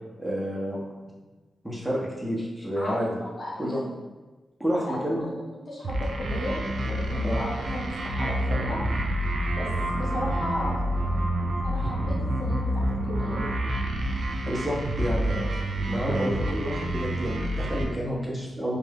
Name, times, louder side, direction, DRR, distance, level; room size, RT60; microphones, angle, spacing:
voice 1, 0.2-0.8 1.6-3.1 3.6-3.8 4.6-5.3 7.2-7.4 13.4-13.5 14.5-15.5 15.9-18.8, equal, ahead, -4 dB, 1.2 m, -29 dB
voice 2, 2.8-3.9 4.7-5.4 5.7-8.8 9.5-11.3 11.6-13.4, left 1 dB, 55° left, -4 dB, 0.9 m, -35 dB
sound 1, 5.8-17.8, right 1 dB, 75° right, 0.5 m, -28 dB
3.3 x 2.7 x 3.6 m, 1.2 s
supercardioid pair, 45°, 0 cm